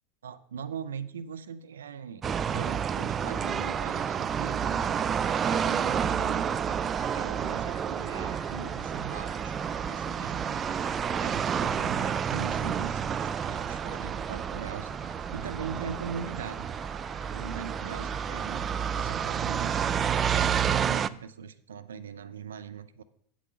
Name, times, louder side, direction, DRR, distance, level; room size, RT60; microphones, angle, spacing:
voice 1, 0.2-2.2 2.5-4.9 5.4-6.8 7.1-9.5 9.9-10.6 11.2-16.7 17.2-19.9 20.3-23.0, right 7 dB, 80° right, 13 dB, 0.6 m, -41 dB
sound 1, 2.2-21.1, right 8 dB, 30° right, 0.3 m, -30 dB
sound 2, 7.0-18.4, left 8 dB, 60° left, 1.2 m, -54 dB
7.6 x 6.3 x 5.7 m, 0.67 s
hypercardioid pair, 90°, 0 cm